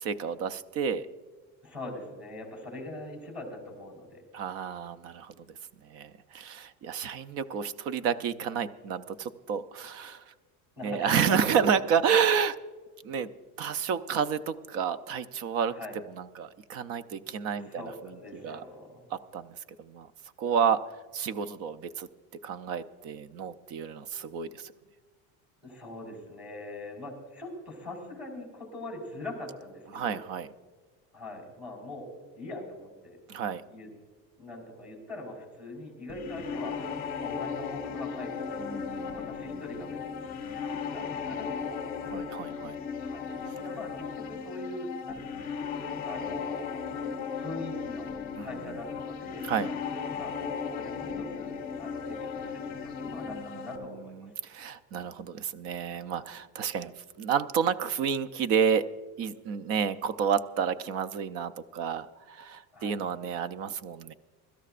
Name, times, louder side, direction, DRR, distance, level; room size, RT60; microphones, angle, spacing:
voice 1, 0.0-1.1 4.3-5.6 5.8-10.3 10.8-12.5 13.0-13.3 13.6-15.7 16.1-18.6 19.1-20.1 20.4-20.8 21.1-22.1 22.4-24.7 29.9-30.5 33.3-33.6 38.6-39.6 42.1-42.8 48.4-48.8 49.4-49.7 53.3-58.9 59.2-64.1, right 7 dB, 40° right, 14 dB, 0.6 m, -30 dB
voice 2, 1.6-4.2 10.8-11.7 15.7-16.0 17.6-19.1 25.6-30.2 31.1-33.2 33.7-33.9 34.4-36.8 37.2-40.3 40.9-41.8 43.0-45.5 46.0-46.7 47.4-49.4 50.1-54.3 62.7-63.0, left 2 dB, 5° right, -2 dB, 4.5 m, -42 dB
sound 1, 36.1-53.8, left 6 dB, 25° left, 1.6 m, -36 dB
23.5 x 13.5 x 2.5 m, 1.4 s
cardioid pair, 180°, 35 cm